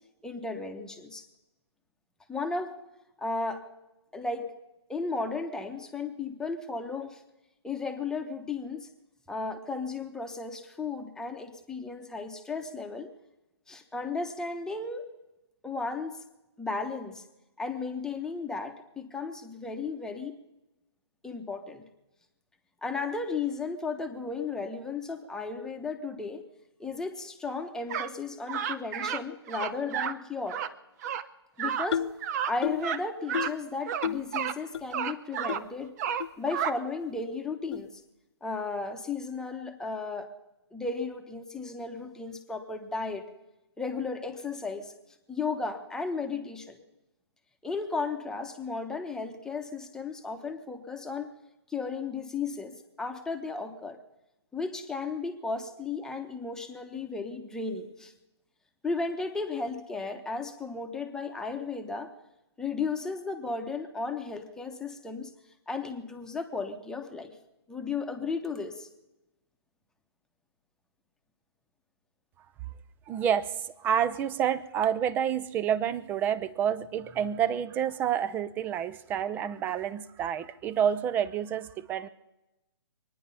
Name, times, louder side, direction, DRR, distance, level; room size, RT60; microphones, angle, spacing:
voice 1, 0.2-1.3 2.3-2.7 3.2-3.6 4.1-4.5 4.9-7.2 7.6-8.9 9.3-13.1 13.7-15.0 15.6-16.1 16.6-17.2 17.6-20.4 21.2-21.8 22.8-26.4 26.8-30.6 31.6-32.0 32.4-35.9 36.4-38.0 38.4-40.3 40.7-43.2 43.8-44.9 45.3-46.8 47.6-51.3 51.7-54.0 54.5-58.1 58.8-62.1 62.6-65.3 65.7-67.3 67.7-68.9, left 4 dB, 5° left, 5 dB, 1.1 m, -34 dB
sound 1, 27.9-28.1 28.5-29.2 29.5-30.1 30.5-30.7 31.0-31.2 31.6-31.9 32.2-32.5 32.8-33.0 33.3-33.5 33.8-34.6 34.9-35.6 36.0-36.7, right 8 dB, 35° right, 0.8 m, -31 dB
sound 2, 31.9-32.2 32.6-32.9 33.3-33.6 34.0-34.3 34.7-34.8 35.5-35.6 36.2-36.3 37.0-37.1 37.7-37.9, left 8 dB, 70° left, 0.5 m, -32 dB
voice 2, 73.1-82.1, right 9 dB, 15° right, 16 dB, 0.5 m, -29 dB
23.5 x 10.0 x 5.6 m, 0.97 s
hypercardioid pair, 145°, 15 cm